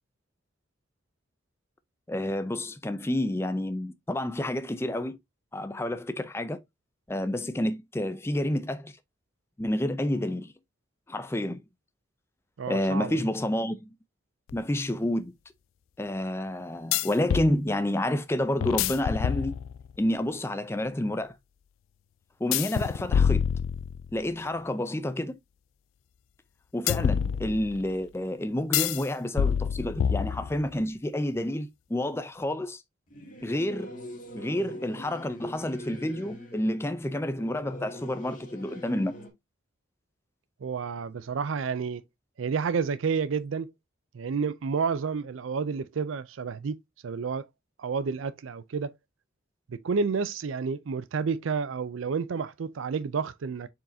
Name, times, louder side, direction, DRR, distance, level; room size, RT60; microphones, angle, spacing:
voice 1, 2.1-5.2 5.5-6.6 7.1-8.9 9.6-10.5 11.1-11.6 12.7-13.9 14.5-15.3 16.0-19.5 20.0-21.4 22.4-23.5 24.1-25.4 26.7-32.8 33.4-33.9 34.3-39.1, left 1 dB, 15° left, 0.4 m, -29 dB
voice 2, 12.6-13.2 40.6-42.0 42.4-43.7 44.1-46.8 47.0-47.5 47.8-48.9 49.7-53.7, right 5 dB, 85° right, 0.4 m, -30 dB
sound 1, 14.5-14.6 16.9-17.5 18.6-19.9 22.5-24.2 26.9-27.9 28.7-29.0 29.4-30.7, left 8 dB, 90° left, 0.3 m, -27 dB
Singing / Musical instrument, 33.1-39.3, equal, 40° left, 2.2 m, -44 dB
7.4 x 4.7 x 2.7 m
head